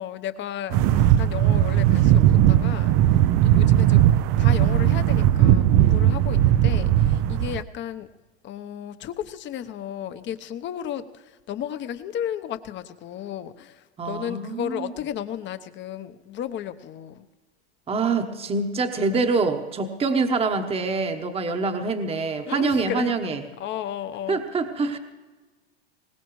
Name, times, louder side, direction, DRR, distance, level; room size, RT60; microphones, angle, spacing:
voice 1, 0.0-4.1 4.4-8.1 8.4-17.3 22.5-23.1 23.6-24.4, left 10 dB, 35° left, 11 dB, 0.9 m, -34 dB
sound 1, 0.7-7.6, right 12 dB, 45° right, 0.6 m, -18 dB
voice 2, 14.0-14.9 17.9-23.4 24.3-25.0, right 4 dB, 20° right, 6 dB, 1.1 m, -25 dB
21.5 x 19.0 x 3.2 m, 1.2 s
hypercardioid pair, 110°, 33 cm